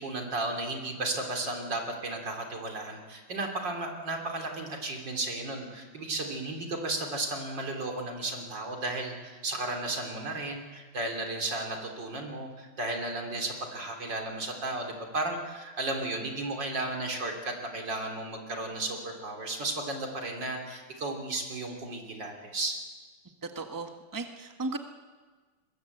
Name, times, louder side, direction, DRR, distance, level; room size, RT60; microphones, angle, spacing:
voice 1, 0.0-22.8, right 2 dB, 85° right, 2 dB, 3.9 m, -34 dB
voice 2, 23.5-24.8, right 3 dB, 10° right, 5 dB, 1.3 m, -36 dB
22.5 x 21.0 x 8.1 m, 1.4 s
omnidirectional pair, 1.9 m